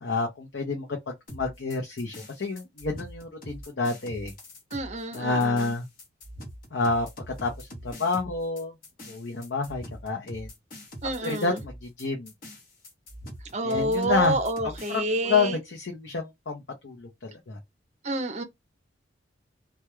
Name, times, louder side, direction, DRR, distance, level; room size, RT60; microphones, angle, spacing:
voice 1, 0.0-4.3 5.1-5.9 6.7-8.7 9.0-10.5 11.2-12.3 13.6-14.4 14.9-17.6, left 4 dB, 75° left, 0.6 m, -29 dB
sound 1, 1.3-15.0, equal, 50° left, 0.9 m, -43 dB
voice 2, 4.7-5.7 11.0-11.6 13.5-15.6 18.0-18.4, right 1 dB, 35° right, 0.5 m, -28 dB
2.3 x 2.2 x 2.9 m
head